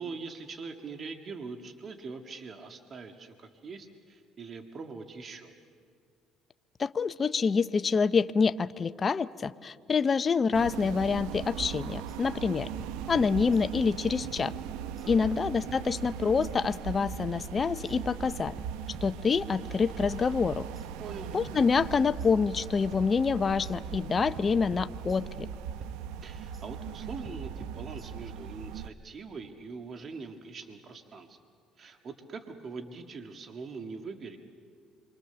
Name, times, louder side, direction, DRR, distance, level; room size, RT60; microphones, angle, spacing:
voice 1, 0.0-5.5 15.0-15.3 21.0-21.3 26.2-31.4 31.8-34.4, right 4 dB, 40° right, 6 dB, 1.7 m, -42 dB
voice 2, 6.8-12.7 13.1-14.5 15.1-18.5 19.0-20.7 21.3-25.5, left 5 dB, 30° left, 12 dB, 0.6 m, -27 dB
sound 1, 10.5-28.9, right 8 dB, 90° right, 0.7 m, -39 dB
sound 2, 12.1-12.2 12.8-13.9 14.2-15.1 15.7-16.8 17.1-18.0 18.6-19.7 20.0-20.9 21.5-22.6 22.9-23.8 24.4-25.5 25.8-26.7 27.2-28.4, right 2 dB, 20° right, 1.6 m, -50 dB
27.5 x 24.0 x 6.9 m, 2.2 s
cardioid pair, 100°, 0 cm